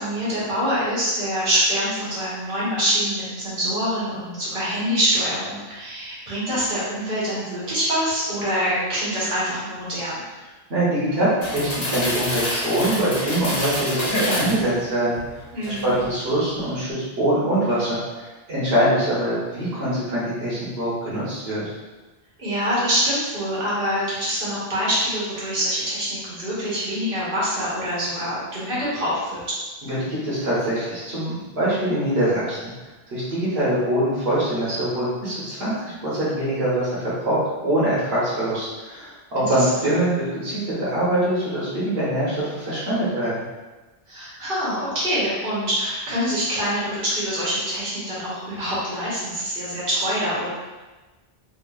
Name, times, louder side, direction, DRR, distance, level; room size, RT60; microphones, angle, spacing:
voice 1, 0.0-10.2 15.5-15.9 22.4-29.4 44.1-50.5, equal, 60° right, -8 dB, 1.3 m, -25 dB
voice 2, 10.7-21.6 29.8-32.7 33.1-43.4, right 1 dB, 75° right, -9 dB, 1.2 m, -23 dB
sound 1, 11.4-14.6 15.1-16.1 16.4-16.6, left 1 dB, 75° left, 1.2 m, -27 dB
2.8 x 2.8 x 2.3 m, 1.2 s
omnidirectional pair, 1.0 m